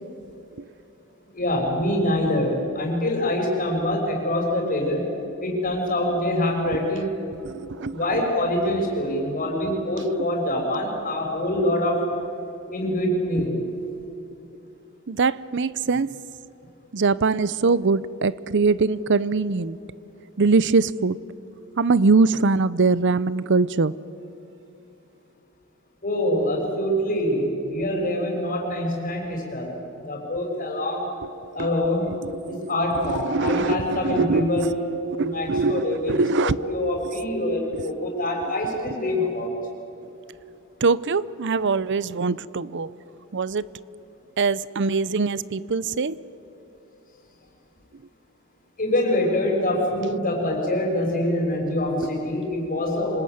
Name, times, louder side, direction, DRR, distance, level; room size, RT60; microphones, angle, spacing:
voice 1, 1.3-5.0 5.4-7.1 7.9-12.1 12.7-13.6 26.0-29.7 30.1-31.1 31.5-32.1 32.5-34.8 35.2-39.5 48.8-53.2, left 1 dB, 40° left, 0 dB, 6.5 m, -25 dB
voice 2, 7.4-8.2 13.4-13.5 15.1-16.1 16.9-19.8 20.4-21.2 21.8-23.9 31.2-31.3 31.6-31.7 32.1-32.7 33.0-34.7 35.2-36.6 37.7-37.8 40.8-42.9 43.3-43.7 44.4-46.2, right 4 dB, 55° right, 19 dB, 0.6 m, -22 dB
26.5 x 19.5 x 9.4 m, 3.0 s
head